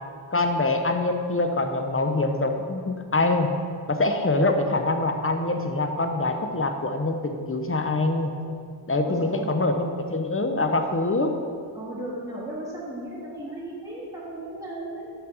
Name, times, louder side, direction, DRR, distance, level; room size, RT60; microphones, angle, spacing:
voice 1, 0.3-3.5 3.9-8.3 8.9-11.3, left 2 dB, 25° left, 5 dB, 0.7 m, -24 dB
voice 2, 9.1-9.5 11.7-15.1, right 1 dB, 5° right, -6 dB, 1.6 m, -35 dB
6.0 x 5.2 x 6.2 m, 2.3 s
wide cardioid pair, 40°, 48 cm